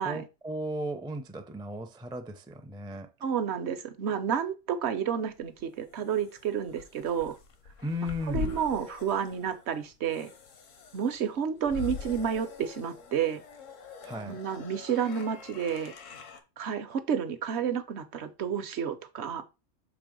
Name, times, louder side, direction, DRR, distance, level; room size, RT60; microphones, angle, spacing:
voice 1, 0.0-3.1 7.8-8.5 14.0-14.4, equal, 5° right, 0.3 m, -36 dB
voice 2, 3.2-7.4 8.3-10.3 10.9-13.4 14.2-15.9 16.6-19.4, right 7 dB, 65° right, 0.9 m, -30 dB
sound 1, 5.3-16.4, left 5 dB, 80° left, 1.3 m, -43 dB
6.1 x 3.3 x 5.1 m
omnidirectional pair, 1.3 m